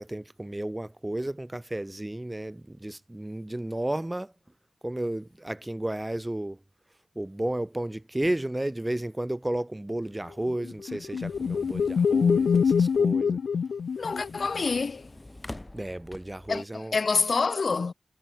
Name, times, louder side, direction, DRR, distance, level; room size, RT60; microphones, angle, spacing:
voice 1, 0.0-4.3 4.8-6.6 7.2-13.4 15.7-17.0, right 1 dB, 15° right, 1.0 m, -32 dB
sound 1, 10.0-16.6, left 1 dB, 20° left, 3.9 m, -48 dB
sound 2, 10.6-14.6, left 6 dB, 80° left, 0.5 m, -25 dB
voice 2, 14.0-15.1 16.5-17.9, left 4 dB, 55° left, 2.9 m, -27 dB
wide cardioid pair, 85°, 0 cm